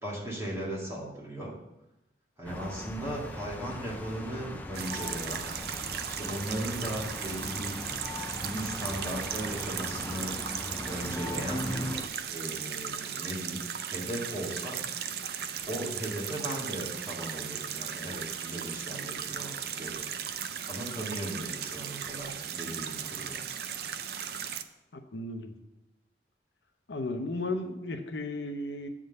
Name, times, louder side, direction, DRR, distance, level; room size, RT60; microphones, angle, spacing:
voice 1, 0.0-1.5 2.4-5.4 6.0-7.8 8.4-10.3 10.9-12.0 12.2-13.6 13.9-14.8 15.7-20.0 20.7-23.4, right 1 dB, 15° right, -5 dB, 1.9 m, -37 dB
sound 1, 2.4-12.1, left 1 dB, 10° left, 0.4 m, -39 dB
sound 2, 4.7-24.6, right 8 dB, 60° right, 0.4 m, -37 dB
voice 2, 24.9-25.5 26.9-28.9, left 2 dB, 80° left, 6 dB, 0.7 m, -34 dB
8.0 x 3.7 x 6.4 m, 0.94 s
head